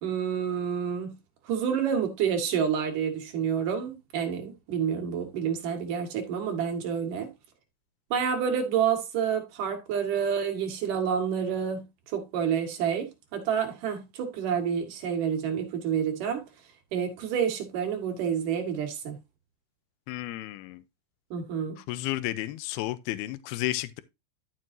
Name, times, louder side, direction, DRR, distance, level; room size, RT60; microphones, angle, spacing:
voice 1, 0.0-1.1 1.4-7.3 8.1-16.5 16.9-19.2 21.3-21.8, right 7 dB, 60° right, 3.2 m, -29 dB
voice 2, 20.1-20.8 21.9-24.0, left 16 dB, 85° left, 2.5 m, -32 dB
12.0 x 6.2 x 2.7 m
omnidirectional pair, 4.7 m